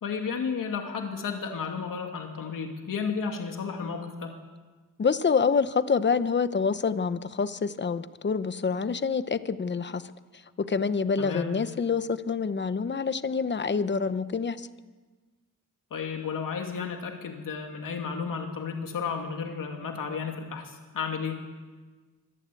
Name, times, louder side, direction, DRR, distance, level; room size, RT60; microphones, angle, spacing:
voice 1, 0.0-4.4 11.2-11.5 15.9-21.4, left 6 dB, 75° left, 3 dB, 2.5 m, -33 dB
voice 2, 5.0-10.0 10.6-14.7, left 5 dB, 35° left, 13 dB, 0.9 m, -27 dB
24.0 x 19.0 x 8.5 m, 1.3 s
wide cardioid pair, 155°, 33 cm